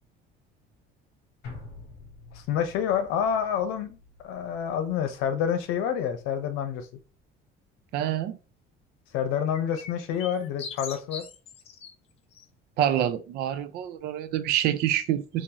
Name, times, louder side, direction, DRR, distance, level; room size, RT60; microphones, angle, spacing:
sound 1, 1.4-5.9 6.2-6.3, left 3 dB, 50° left, 1.4 m, -48 dB
voice 1, 2.3-4.0 4.2-6.9 9.1-11.3, left 8 dB, 90° left, 0.8 m, -28 dB
voice 2, 7.9-8.4 12.8-15.4, right 11 dB, 50° right, 0.4 m, -26 dB
sound 2, 9.3-11.9 12.3-12.5, left 6 dB, 30° left, 0.4 m, -41 dB
3.9 x 2.5 x 2.8 m
cardioid pair, 170°, 21 cm